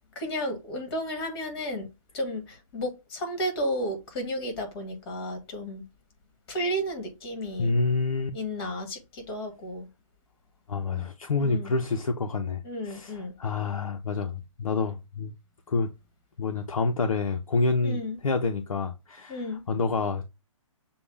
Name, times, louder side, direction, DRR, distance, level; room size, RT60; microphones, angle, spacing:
voice 1, 0.2-1.9 2.1-5.8 6.5-7.7 8.3-9.9 11.4-11.7 12.6-13.3 17.8-18.2 19.3-19.6, equal, 45° left, 2.0 m, -32 dB
voice 2, 7.6-8.3 10.7-15.3 15.7-15.9 16.4-20.3, left 4 dB, 75° left, 0.8 m, -28 dB
6.9 x 2.3 x 3.3 m
figure-of-eight pair, 140°, 17 cm